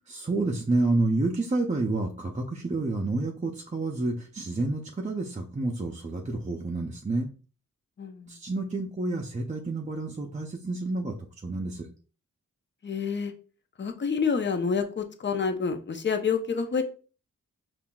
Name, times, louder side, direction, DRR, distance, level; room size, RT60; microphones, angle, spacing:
voice 1, 0.1-7.3 8.3-11.2 11.4-11.9, right 2 dB, 25° right, 0 dB, 0.5 m, -29 dB
voice 2, 8.0-8.3 12.8-13.3 13.8-16.8, left 5 dB, 35° left, 7 dB, 0.6 m, -28 dB
5.5 x 2.4 x 2.2 m, 0.37 s
cardioid pair, 85°, 32 cm